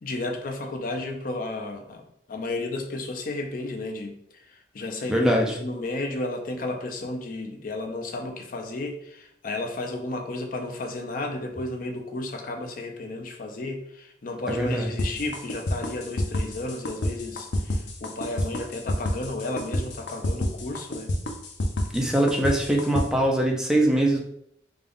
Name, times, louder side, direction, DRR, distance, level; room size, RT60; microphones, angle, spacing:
voice 1, 0.0-2.0 2.3-21.1, left 2 dB, 50° left, 3 dB, 0.5 m, -33 dB
voice 2, 5.1-5.6 14.5-14.9 21.9-24.2, right 1 dB, 5° right, 0 dB, 0.5 m, -22 dB
sound 1, 15.0-23.1, left 1 dB, 90° left, 0.6 m, -28 dB
3.7 x 2.4 x 3.4 m, 0.72 s
head